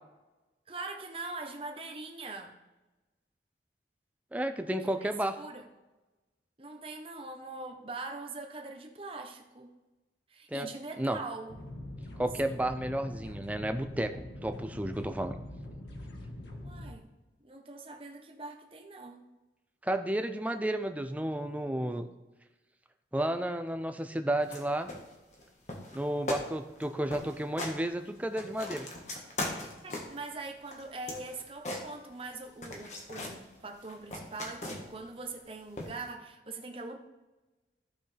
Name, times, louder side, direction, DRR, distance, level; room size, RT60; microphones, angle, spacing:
voice 1, 0.7-2.5 4.8-5.6 6.6-9.7 10.3-11.6 12.4-12.6 16.6-17.1 17.4-19.2 29.8-37.0, right 3 dB, 30° right, 3 dB, 1.0 m, -42 dB
voice 2, 4.3-5.3 10.5-10.7 11.0-11.2 12.2-15.4 19.8-22.1 23.1-24.9 25.9-28.9, right 1 dB, 10° right, 7 dB, 0.5 m, -32 dB
sound 1, 11.5-16.9, left 1 dB, 80° left, 1.5 m, -44 dB
sound 2, 24.4-24.6 24.9-25.4 25.7-26.0 26.3-26.5 26.7-26.8 27.1-27.8 28.2-30.2 30.7-32.3 32.6-33.4 33.8-35.0 35.8-36.0, left 2 dB, 40° left, 1.5 m, -39 dB
14.5 x 6.0 x 3.4 m, 1.1 s
head